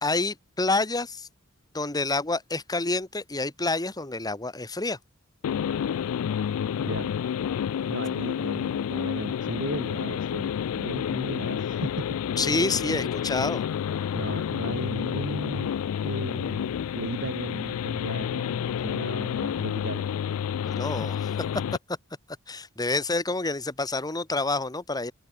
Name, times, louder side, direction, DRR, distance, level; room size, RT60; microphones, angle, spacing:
voice 1, 0.0-1.3 1.7-5.0 12.4-13.6 20.6-21.3 22.5-25.1, left 3 dB, 20° left, 1.5 m, -28 dB
sound 1, 5.4-21.8, left 8 dB, 85° left, 0.3 m, -29 dB
voice 2, 7.9-12.2 14.1-15.7 16.0-20.1, right 1 dB, 60° right, 6.0 m, -36 dB
open air
head